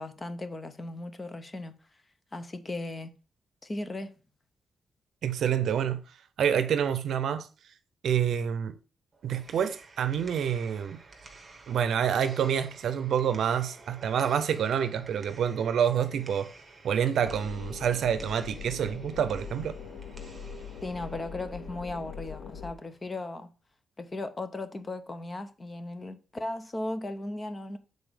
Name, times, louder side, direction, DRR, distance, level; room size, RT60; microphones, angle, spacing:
voice 1, 0.0-1.7 2.3-3.1 3.6-4.2 20.8-23.5 24.0-27.8, left 2 dB, 20° left, 0.6 m, -36 dB
voice 2, 5.2-6.0 6.4-7.5 8.0-8.7 9.2-11.0 11.7-16.5 16.8-19.8, right 8 dB, 70° right, 0.6 m, -27 dB
sound 1, 9.1-23.1, right 3 dB, 25° right, 1.2 m, -52 dB
sound 2, 17.3-22.7, left 6 dB, 70° left, 0.6 m, -42 dB
7.0 x 4.0 x 5.0 m
wide cardioid pair, 160°, 0 cm